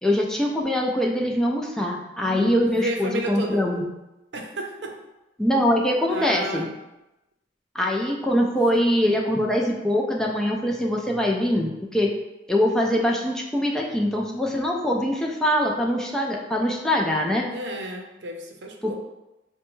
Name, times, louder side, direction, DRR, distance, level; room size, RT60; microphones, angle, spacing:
voice 1, 0.0-3.8 5.4-6.7 7.7-12.1 12.5-17.5 18.8-18.9, equal, 5° left, -1 dB, 0.4 m, -23 dB
voice 2, 2.2-3.7 4.3-5.0 6.1-6.7 17.5-18.9, right 1 dB, 75° right, 2 dB, 0.6 m, -32 dB
5.9 x 2.2 x 3.0 m, 0.98 s
head